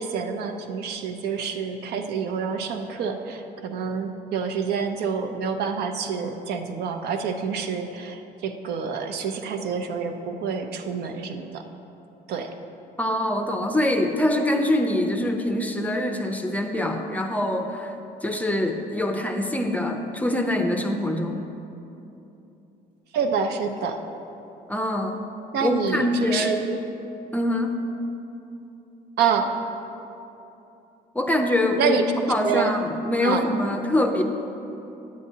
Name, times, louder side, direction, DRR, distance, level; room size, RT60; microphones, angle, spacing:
voice 1, 0.0-11.6 12.3-12.5 23.1-24.0 25.5-26.8 29.2-29.5 31.8-32.7 33.2-33.4, right 6 dB, 75° right, 6 dB, 0.6 m, -27 dB
voice 2, 13.0-17.9 18.2-21.4 24.7-25.2 25.6-26.6 27.3-27.7 31.1-31.9 32.3-34.2, left 1 dB, 10° left, 4 dB, 0.5 m, -24 dB
9.2 x 8.4 x 2.8 m, 2.9 s
cardioid pair, 110°, 17 cm